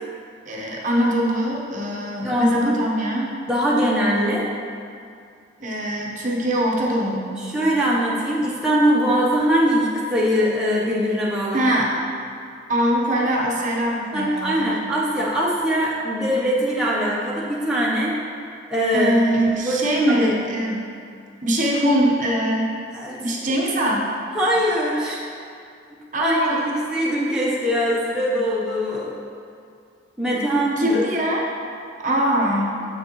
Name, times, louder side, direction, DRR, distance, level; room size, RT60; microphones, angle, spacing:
voice 1, 0.5-3.3 5.6-7.5 11.5-12.0 12.7-14.7 18.9-20.8 21.4-22.7 23.2-24.1 26.1-26.8 30.3-31.5 32.0-32.8, equal, 40° right, -2 dB, 0.9 m, -22 dB
voice 2, 2.2-2.8 3.5-4.5 7.5-11.7 14.1-18.1 18.7-19.3 19.6-20.3 22.9-23.2 24.4-25.2 26.2-29.1 30.2-31.0 32.1-32.2, equal, 5° right, -7 dB, 0.7 m, -22 dB
7.6 x 6.3 x 3.0 m, 2.4 s
head